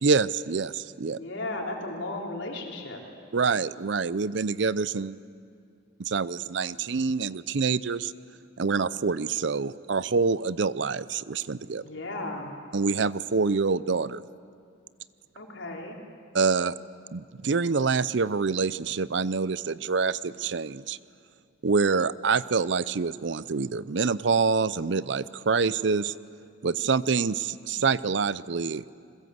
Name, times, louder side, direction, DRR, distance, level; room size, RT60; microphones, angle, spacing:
voice 1, 0.0-1.2 3.3-5.2 6.0-8.1 8.6-11.8 12.7-14.2 16.3-16.7 17.1-21.0 21.6-26.1 26.6-28.8, right 5 dB, 65° right, 18 dB, 0.6 m, -26 dB
voice 2, 1.2-3.0 11.8-12.5 15.4-16.0, left 2 dB, 75° left, 0 dB, 4.2 m, -35 dB
29.0 x 21.5 x 8.0 m, 2.3 s
head